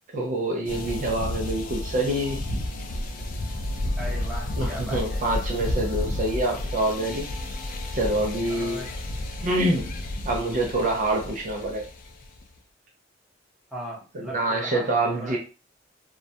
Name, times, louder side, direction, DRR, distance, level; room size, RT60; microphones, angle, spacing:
voice 1, 0.1-2.5 4.6-7.5 7.9-8.8 9.4-10.0 10.2-11.8 14.3-15.4, right 1 dB, 40° right, 0 dB, 0.4 m, -26 dB
sound 1, 0.7-12.4, left 1 dB, 45° left, 0.4 m, -32 dB
voice 2, 4.0-5.2 8.5-8.9 13.7-15.4, equal, ahead, -5 dB, 0.8 m, -38 dB
2.2 x 2.0 x 2.7 m, 0.33 s
head